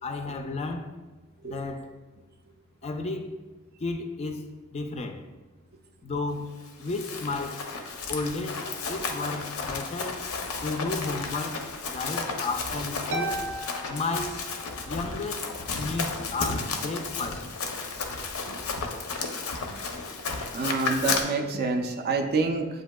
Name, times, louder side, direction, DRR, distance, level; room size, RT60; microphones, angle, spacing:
voice 1, 0.0-0.9 1.4-1.9 2.8-3.4 3.8-4.4 4.7-5.2 6.0-7.7 8.1-10.3 10.6-13.4 13.8-14.5 14.9-15.5 15.8-17.5, left 3 dB, 30° left, 0.3 m, -33 dB
Run, 6.7-21.2, left 4 dB, 90° left, 0.5 m, -33 dB
Harp, 13.1-15.0, right 2 dB, 90° right, 0.6 m, -35 dB
voice 2, 20.5-22.7, right 3 dB, 45° right, 0.3 m, -27 dB
7.8 x 2.6 x 2.2 m
head